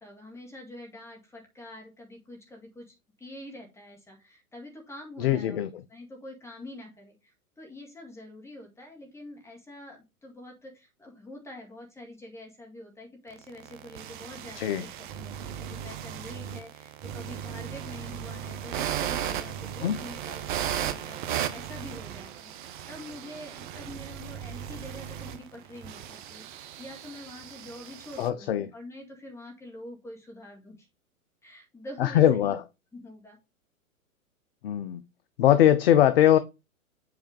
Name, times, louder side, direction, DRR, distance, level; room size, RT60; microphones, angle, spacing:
voice 1, 0.0-5.6 5.9-21.2 21.5-30.9 31.4-32.5 32.9-33.4, left 1 dB, 5° left, 1.9 m, -46 dB
voice 2, 5.2-5.7 14.6-14.8 19.8-20.0 28.2-28.7 32.0-32.6 34.6-35.0 35.4-36.4, left 11 dB, 45° left, 0.6 m, -21 dB
sound 1, 13.3-28.3, right 10 dB, 35° right, 0.8 m, -36 dB
7.9 x 3.4 x 5.2 m
figure-of-eight pair, 105°, 43 cm